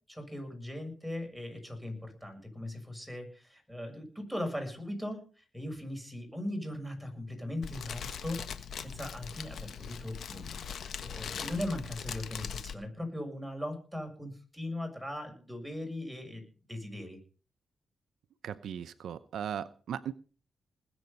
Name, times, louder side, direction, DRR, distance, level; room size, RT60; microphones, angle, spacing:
voice 1, 0.1-8.4 8.8-17.2, left 1 dB, ahead, 4 dB, 6.9 m, -39 dB
Fire, 7.6-12.7, left 7 dB, 75° left, 1.4 m, -40 dB
voice 2, 18.4-20.1, right 9 dB, 80° right, 13 dB, 0.8 m, -37 dB
20.5 x 8.0 x 5.4 m, 0.38 s
cardioid pair, 75°, 0 cm